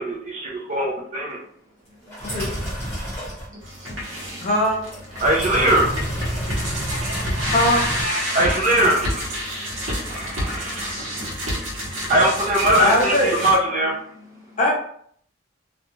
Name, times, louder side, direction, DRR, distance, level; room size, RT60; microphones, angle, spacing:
voice 1, 0.0-1.4 5.2-5.9 6.9-9.3 9.9-11.2 12.1-14.0, right 1 dB, 35° right, 0.5 m, -22 dB
voice 2, 0.5-0.9 1.8-4.5 5.1-5.3 6.3-7.6 8.1-8.4 8.8-12.8 13.1-13.5 13.8-14.6, left 2 dB, 15° right, 0.8 m, -48 dB
sound 1, 2.1-3.5 4.9-8.0, equal, 10° left, 1.0 m, -29 dB
sound 2, 3.6-13.6, equal, 75° right, 1.0 m, -29 dB
voice 3, 4.4-4.8 7.5-7.8 12.8-13.4 14.6-14.7, left 1 dB, 40° left, 0.8 m, -20 dB
2.4 x 2.3 x 3.0 m
head